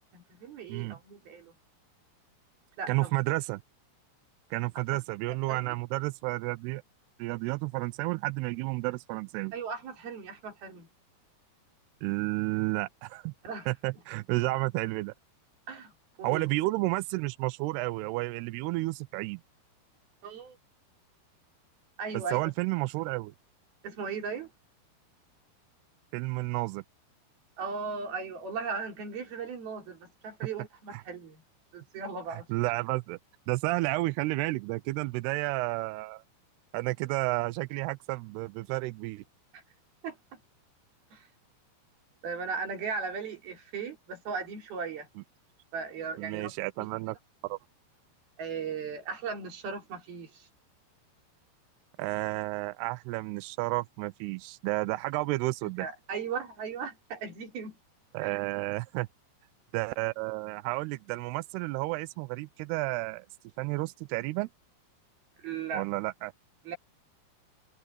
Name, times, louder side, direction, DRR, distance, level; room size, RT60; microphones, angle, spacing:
voice 1, 0.1-1.5 2.8-3.4 5.5-5.7 9.5-10.9 13.4-13.7 15.7-15.9 16.2-16.5 20.2-20.6 22.0-22.5 23.8-24.5 27.6-31.4 31.7-32.5 40.0-40.2 41.1-41.2 42.2-45.1 45.7-46.5 46.8-46.9 48.4-50.5 55.6-57.8 58.2-58.4 65.4-65.9 66.7-66.8, right 5 dB, 60° right, 5.5 m, -37 dB
voice 2, 2.9-3.6 4.5-6.8 7.2-9.5 12.0-13.3 13.7-15.1 16.2-19.4 22.3-23.3 26.1-26.8 30.9-31.0 32.3-33.2 33.5-36.2 36.7-39.2 46.2-47.2 47.4-47.6 52.0-55.9 58.1-59.1 59.7-63.3 63.6-64.5 65.7-66.3, right 21 dB, 80° right, 2.4 m, -31 dB
omnidirectional pair, 5.0 m